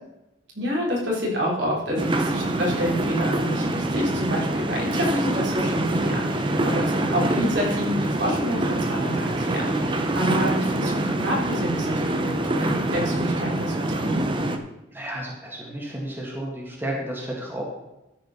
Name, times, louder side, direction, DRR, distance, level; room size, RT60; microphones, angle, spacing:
voice 1, 0.5-14.2, equal, 75° right, -3 dB, 3.7 m, -27 dB
sound 1, 2.0-14.6, right 1 dB, 25° right, 0.9 m, -25 dB
voice 2, 14.9-17.6, right 1 dB, 10° right, -3 dB, 2.0 m, -33 dB
13.0 x 5.4 x 5.7 m, 0.94 s
head